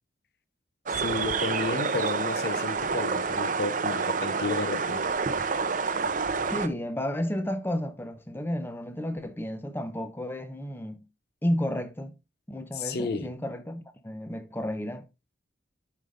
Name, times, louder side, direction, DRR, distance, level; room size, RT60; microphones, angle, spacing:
sound 1, 0.9-6.7, right 5 dB, 45° right, 0.5 m, -28 dB
voice 1, 1.0-5.1 12.7-13.3, left 3 dB, 55° left, 0.7 m, -32 dB
voice 2, 6.5-11.0 11.4-12.1 12.5-15.0, left 1 dB, 10° left, 0.7 m, -32 dB
11.5 x 5.1 x 2.4 m
head